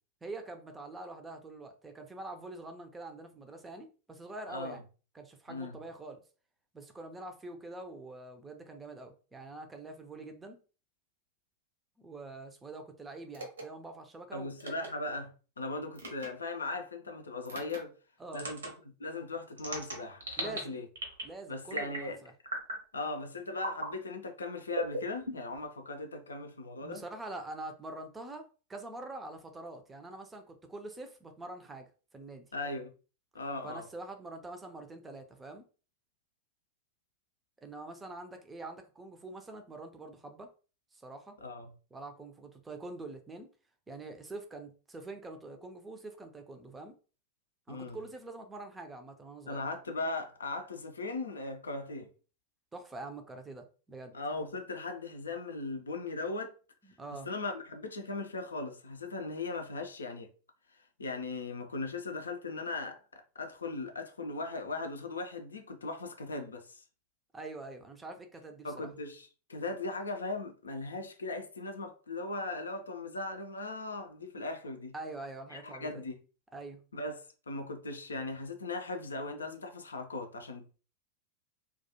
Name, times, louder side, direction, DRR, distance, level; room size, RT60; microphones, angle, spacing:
voice 1, 0.2-4.8 5.1-6.2 6.7-10.6 12.0-14.5 18.2-18.5 20.4-20.8 21.2-22.3 26.8-32.5 33.6-35.6 37.6-40.5 40.9-41.4 41.9-43.5 43.9-47.0 47.7-49.6 52.7-54.1 56.8-57.3 67.3-68.9 74.9-76.0 76.5-76.8, right 2 dB, 15° right, 0.5 m, -45 dB
voice 2, 4.5-4.8 5.5-5.8 14.3-15.3 15.6-17.9 18.3-18.7 19.0-20.9 21.5-22.2 22.9-27.0 32.5-32.9 33.3-33.9 41.4-41.7 47.7-48.0 49.5-52.1 54.1-56.5 57.1-60.3 61.0-66.8 68.6-74.9 75.5-76.1 76.9-80.8, left 3 dB, 75° left, 0.4 m, -38 dB
sound 1, 13.3-13.6 14.6-14.9 16.0-16.3 17.5-17.8 18.3-18.7 19.6-20.6 21.0-21.3 21.7-22.1 22.5-22.8 23.6-23.9 24.7-25.6, right 1 dB, 70° right, 0.8 m, -37 dB
2.3 x 2.2 x 2.8 m
figure-of-eight pair, 90°, 0 cm